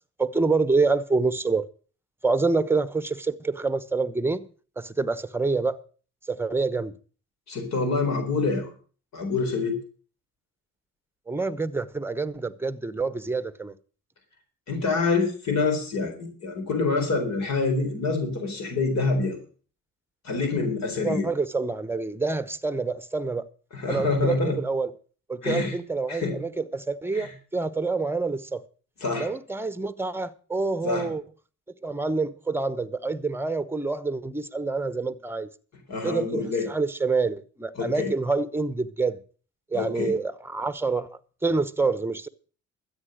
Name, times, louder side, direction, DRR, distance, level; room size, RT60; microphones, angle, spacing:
voice 1, 0.2-1.7 2.2-4.4 4.8-5.8 6.3-6.9 11.3-13.8 21.0-23.4 23.9-24.9 25.3-28.6 29.2-31.2 31.8-35.5 36.0-39.2 39.7-42.3, right 3 dB, 10° right, 1.0 m, -27 dB
voice 2, 7.5-8.7 9.1-9.8 14.7-19.4 20.2-21.3 23.7-24.6 25.4-25.8 26.1-26.4 27.1-27.3 29.0-29.3 30.8-31.1 35.9-36.7 37.8-38.1 39.7-40.1, left 4 dB, 60° left, 4.2 m, -26 dB
13.5 x 8.7 x 6.5 m
cardioid pair, 90°, 30 cm